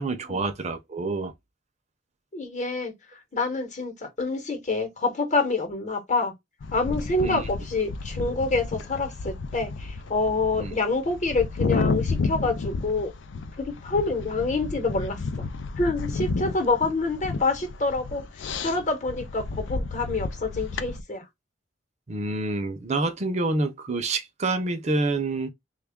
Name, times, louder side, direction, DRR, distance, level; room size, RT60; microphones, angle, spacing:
voice 1, 0.0-1.3 7.2-7.4 10.6-10.7 22.1-25.5, right 2 dB, 40° right, 0.6 m, -27 dB
voice 2, 2.3-6.3 6.7-13.1 13.6-15.4 15.8-18.2 18.6-21.3, left 3 dB, 40° left, 1.0 m, -27 dB
sound 1, 6.6-21.0, left 3 dB, 80° left, 0.5 m, -31 dB
3.3 x 2.3 x 3.5 m
head